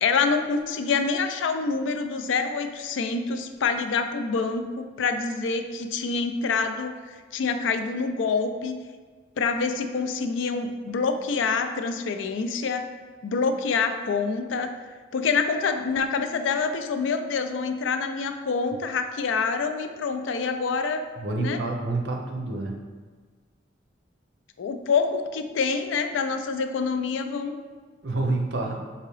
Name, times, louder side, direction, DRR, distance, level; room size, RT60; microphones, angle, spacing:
voice 1, 0.0-7.0 7.3-8.8 9.4-12.9 13.2-14.8 15.1-21.0 21.4-21.6 24.6-27.6, left 5 dB, 85° left, 8 dB, 0.3 m, -26 dB
voice 2, 21.2-22.7 28.0-28.8, right 2 dB, 70° right, 1 dB, 0.6 m, -28 dB
4.6 x 2.8 x 3.1 m, 1.5 s
head